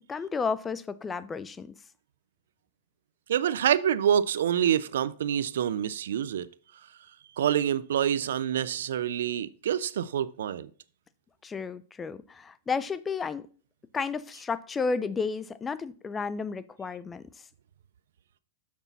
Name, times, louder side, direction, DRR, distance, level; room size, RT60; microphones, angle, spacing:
voice 1, 0.1-1.7 11.4-13.5 13.9-17.2, left 5 dB, 15° left, 0.4 m, -32 dB
voice 2, 3.3-6.5 7.4-10.7, right 9 dB, 80° right, 0.4 m, -26 dB
7.0 x 6.1 x 4.0 m
hypercardioid pair, 130°, 0 cm